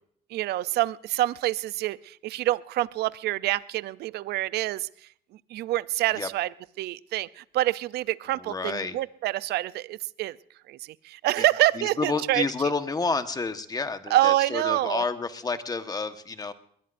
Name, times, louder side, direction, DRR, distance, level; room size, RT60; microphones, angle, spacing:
voice 1, 0.3-4.9 5.5-6.5 6.8-10.4 10.7-12.4 14.1-15.0, right 16 dB, 75° right, 18 dB, 0.6 m, -26 dB
voice 2, 8.4-9.0 11.4-11.5 11.7-16.5, left 4 dB, 20° left, 9 dB, 1.3 m, -30 dB
21.5 x 20.5 x 2.6 m, 0.65 s
cardioid pair, 110°, 17 cm